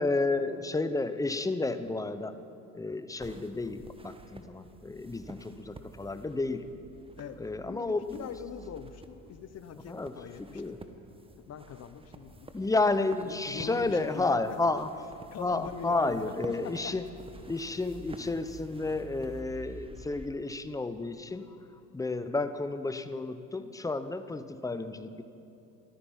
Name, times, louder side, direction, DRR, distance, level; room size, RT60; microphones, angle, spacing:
voice 1, 0.0-2.3 2.7-6.7 7.4-8.3 9.9-10.8 12.5-14.9 15.4-17.1 17.5-21.6 21.9-25.2, left 3 dB, 10° left, 11 dB, 0.6 m, -31 dB
sound 1, 3.2-20.3, right 3 dB, 15° right, 1.0 m, -50 dB
voice 2, 7.1-10.6 11.4-12.5 13.3-14.4 15.3-16.3 16.6-16.9, left 8 dB, 40° left, 12 dB, 0.8 m, -42 dB
14.0 x 12.5 x 5.4 m, 2.9 s
supercardioid pair, 80°, 38 cm